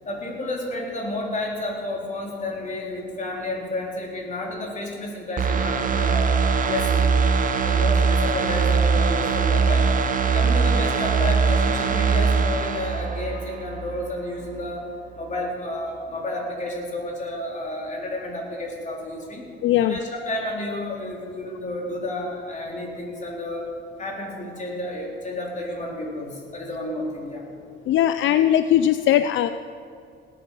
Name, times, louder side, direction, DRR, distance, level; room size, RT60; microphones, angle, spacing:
voice 1, 0.1-6.4 6.7-7.1 7.6-9.9 10.2-14.9 15.1-19.5 19.8-23.7 24.0-27.5, left 1 dB, 40° left, -2 dB, 4.0 m, -31 dB
sound 1, 5.4-14.0 14.4-14.5, right 5 dB, 40° right, 0.9 m, -21 dB
voice 2, 19.6-20.0 27.9-29.5, left 11 dB, 75° left, 11 dB, 0.5 m, -19 dB
18.5 x 9.3 x 5.6 m, 2.3 s
cardioid pair, 90°, 20 cm